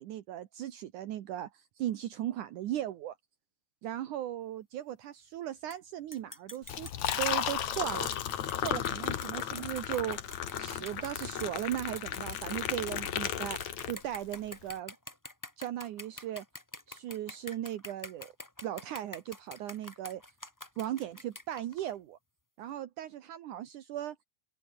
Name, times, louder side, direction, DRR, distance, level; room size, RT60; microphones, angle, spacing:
voice 1, 0.0-3.2 3.8-6.9 7.2-8.1 8.5-10.2 10.6-13.6 13.9-15.0 15.6-16.5 16.9-18.3 18.6-20.2 20.8-22.2 22.6-24.2, right 12 dB, 70° right, 2.6 m, -37 dB
sound 1, 5.7-5.8 6.1-21.9, left 1 dB, 15° left, 0.6 m, -47 dB
Liquid, 6.6-14.3, left 10 dB, 60° left, 2.8 m, -34 dB
open air
omnidirectional pair, 3.8 m